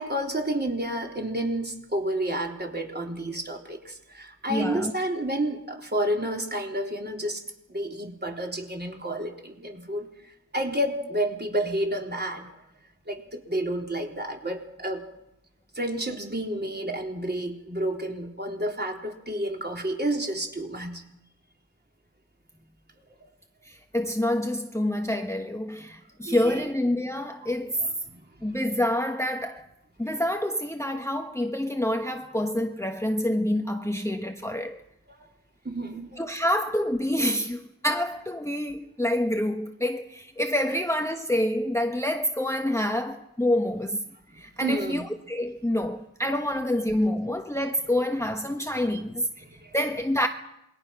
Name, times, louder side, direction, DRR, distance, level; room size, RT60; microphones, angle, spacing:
voice 1, 0.0-7.4 7.7-10.1 10.5-12.5 13.1-15.0 15.7-21.0 23.2-23.3 26.3-26.7 27.4-27.5 27.8-28.2 35.1-35.3 35.6-36.2 44.3-45.0 48.8-49.0 49.4-49.8, right 1 dB, 30° right, 3.9 m, -30 dB
voice 2, 4.5-4.9 23.6-27.9 28.4-29.7 30.0-34.8 36.2-44.0 44.4-49.4 49.7-50.3, left 1 dB, 10° left, 1.2 m, -27 dB
27.5 x 22.0 x 6.0 m
wide cardioid pair, 70°, 35 cm